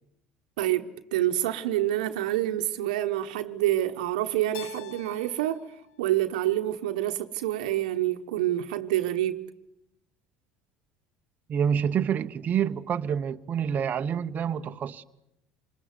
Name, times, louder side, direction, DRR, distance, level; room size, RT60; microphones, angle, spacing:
voice 1, 0.6-5.7 6.0-9.5, right 13 dB, 90° right, 1.2 m, -27 dB
Keyboard (musical), 4.5-7.4, left 10 dB, 75° left, 1.2 m, -48 dB
voice 2, 11.5-15.0, right 8 dB, 40° right, 1.0 m, -27 dB
26.0 x 21.0 x 9.6 m
supercardioid pair, 95°, 4 cm